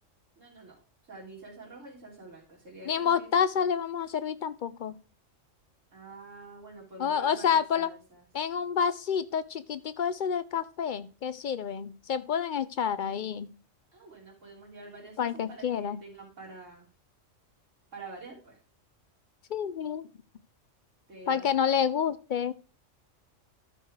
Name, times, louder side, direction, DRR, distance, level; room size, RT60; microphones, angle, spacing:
voice 1, 0.4-3.3 5.9-8.2 13.9-16.9 17.9-18.6 21.1-21.6, right 3 dB, 75° right, -4 dB, 3.7 m, -47 dB
voice 2, 2.9-5.0 7.0-7.9 8.3-13.5 15.2-16.0 19.5-20.1 21.3-22.5, left 7 dB, 60° left, 14 dB, 0.5 m, -28 dB
12.5 x 4.7 x 4.7 m, 0.35 s
omnidirectional pair, 1.3 m